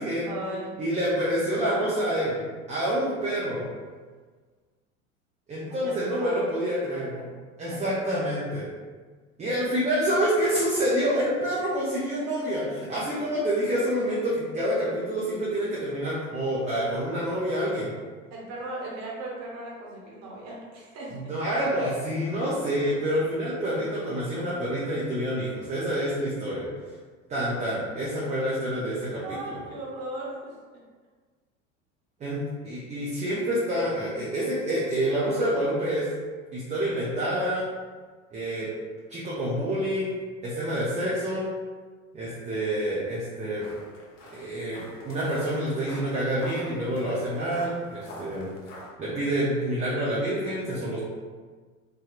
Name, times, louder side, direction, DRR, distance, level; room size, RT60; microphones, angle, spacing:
voice 1, 0.3-1.0 2.8-2.9 5.7-6.6 6.9-7.0 7.7-7.8 18.3-21.2 29.2-30.5, right 1 dB, 45° right, -4 dB, 1.0 m, -37 dB
voice 2, 0.8-2.4 2.7-3.7 5.5-7.1 7.6-8.6 9.4-17.9 21.1-26.6 27.3-29.2 29.5-29.6 32.2-36.1 36.5-37.6 38.3-38.7 39.1-40.1 40.4-41.5 42.1-43.6 44.3-48.5 49.0-51.0, equal, 20° right, -7 dB, 0.5 m, -27 dB
sound 1, 43.6-48.9, left 1 dB, 75° left, 0.7 m, -45 dB
2.8 x 2.3 x 2.2 m, 1.5 s
figure-of-eight pair, 75°, 39 cm